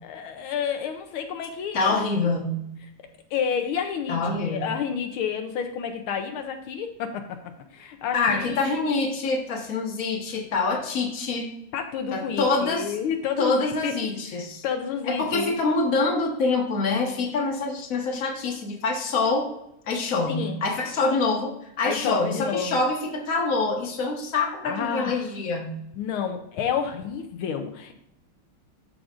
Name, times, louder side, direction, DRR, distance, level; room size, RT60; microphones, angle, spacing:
voice 1, 0.0-2.0 3.3-7.2 7.7-8.8 11.7-13.9 14.3-15.6 20.3-20.6 21.8-22.8 24.6-25.2 26.0-27.9, left 7 dB, 85° left, 6 dB, 1.5 m, -30 dB
voice 2, 1.7-2.7 4.1-4.7 8.1-11.5 12.1-12.9 13.4-14.6 15.1-19.5 19.9-25.8, left 3 dB, 45° left, 0 dB, 1.6 m, -25 dB
13.0 x 5.0 x 2.5 m, 0.78 s
omnidirectional pair, 2.3 m